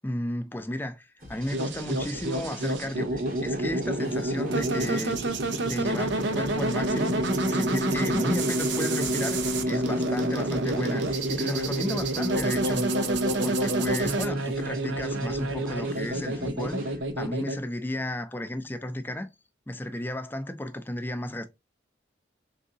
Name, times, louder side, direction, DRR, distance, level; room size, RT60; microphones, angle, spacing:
voice 1, 0.0-5.2 5.6-7.1 7.5-13.1 13.4-19.3 19.7-21.5, left 1 dB, 10° left, 0.4 m, -33 dB
sound 1, 1.2-17.3, equal, 45° right, 2.0 m, -44 dB
sound 2, 1.5-17.6, right 1 dB, 70° right, 0.7 m, -27 dB
3.9 x 3.7 x 2.7 m
head